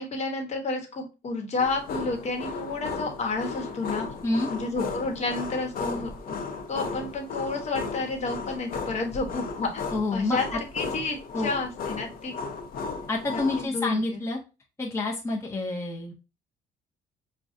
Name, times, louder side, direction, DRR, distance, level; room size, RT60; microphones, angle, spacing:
voice 1, 0.0-4.1 4.5-6.4 6.7-12.3 13.3-14.2, left 3 dB, 40° left, 2 dB, 1.1 m, -31 dB
sound 1, 1.6-13.7, left 4 dB, 60° left, 0.8 m, -35 dB
voice 2, 9.9-10.4 11.3-11.5 13.1-14.4 14.8-16.2, left 2 dB, 15° left, -1 dB, 0.7 m, -28 dB
6.1 x 2.3 x 2.6 m, 0.29 s
cardioid pair, 110°, 17 cm